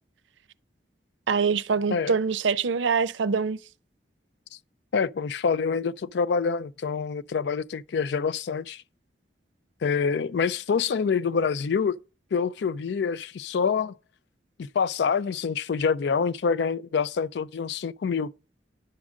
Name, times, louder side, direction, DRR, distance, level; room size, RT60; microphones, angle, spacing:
voice 1, 1.3-3.6, right 5 dB, 85° right, 0.5 m, -24 dB
voice 2, 4.9-8.8 9.8-12.0 12.3-13.9 14.7-18.3, left 5 dB, 65° left, 0.4 m, -26 dB
10.5 x 3.7 x 6.3 m
head